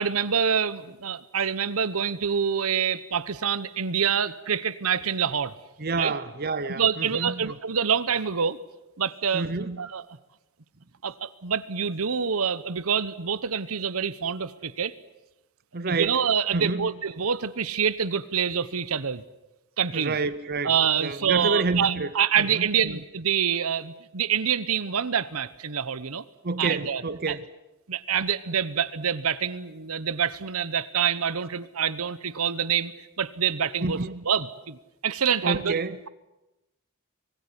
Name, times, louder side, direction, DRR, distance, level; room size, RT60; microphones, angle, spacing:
voice 1, 0.0-5.5 6.0-6.1 6.6-8.6 9.0-9.5 9.8-10.0 11.0-14.9 15.8-19.2 19.8-20.2 20.6-26.2 26.6-27.0 27.3-27.4 27.9-34.0 34.2-34.8 35.0-35.8, right 7 dB, 75° right, 1.0 m, -26 dB
voice 2, 5.8-7.5 9.3-9.8 15.7-16.2 16.5-16.9 19.9-20.7 21.0-22.1 22.4-23.0 26.4-27.5 33.8-34.2 35.4-36.0, right 3 dB, 45° right, 0.9 m, -29 dB
25.0 x 19.0 x 9.8 m
head